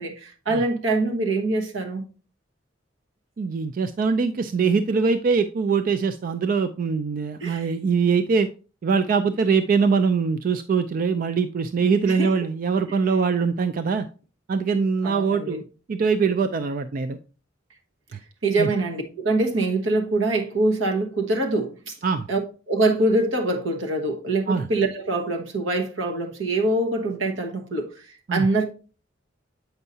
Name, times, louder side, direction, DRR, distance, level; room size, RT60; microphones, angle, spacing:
voice 1, 0.0-2.0 7.4-7.7 11.8-12.3 15.0-15.6 18.4-21.9 22.3-22.4 22.7-27.9 28.3-28.6, right 2 dB, 80° right, 1.2 m, -24 dB
voice 2, 3.4-8.5 8.8-14.1 14.5-15.6 15.9-17.2 18.6-18.7 22.0-22.3 24.5-24.7 28.3-28.5, right 5 dB, 45° right, 0.3 m, -22 dB
7.9 x 5.5 x 2.7 m
head